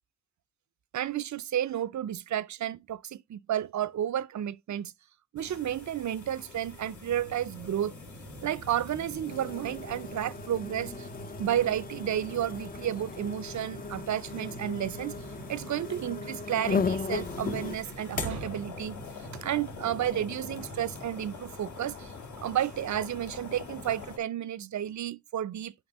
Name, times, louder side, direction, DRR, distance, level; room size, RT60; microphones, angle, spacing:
voice 1, 0.9-4.9 5.3-7.9 8.4-11.1 11.4-15.2 15.5-19.0 19.3-22.1 22.4-25.7, right 11 dB, 60° right, 0.5 m, -32 dB
sound 1, 5.4-24.2, left 4 dB, 60° left, 1.7 m, -44 dB
sound 2, 6.5-21.1, right 1 dB, 80° left, 1.8 m, -47 dB
sound 3, 9.3-17.8, left 5 dB, 30° left, 0.5 m, -36 dB
8.9 x 4.8 x 2.9 m
cardioid pair, 55°, 32 cm